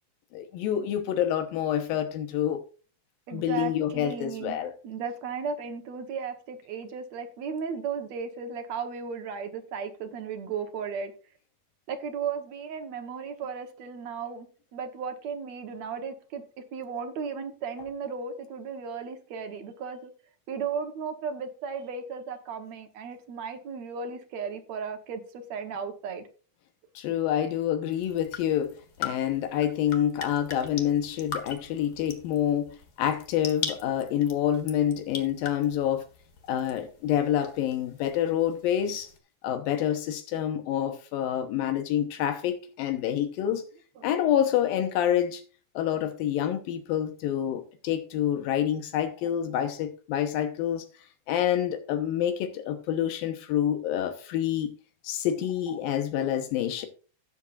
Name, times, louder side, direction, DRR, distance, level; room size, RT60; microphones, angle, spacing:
voice 1, 0.3-2.6 3.3-4.7 27.0-36.1 36.5-39.1 39.4-43.6 44.0-45.4 45.7-50.9 51.3-54.7 55.0-56.9, left 10 dB, 85° left, 2.8 m, -27 dB
voice 2, 3.3-4.6 4.8-11.1 11.9-14.5 14.7-16.4 16.7-20.1 20.5-26.3 44.0-44.1, right 6 dB, 60° right, 2.1 m, -35 dB
sound 1, 27.9-39.2, left 5 dB, 55° left, 1.0 m, -41 dB
17.5 x 7.3 x 2.5 m
omnidirectional pair, 4.1 m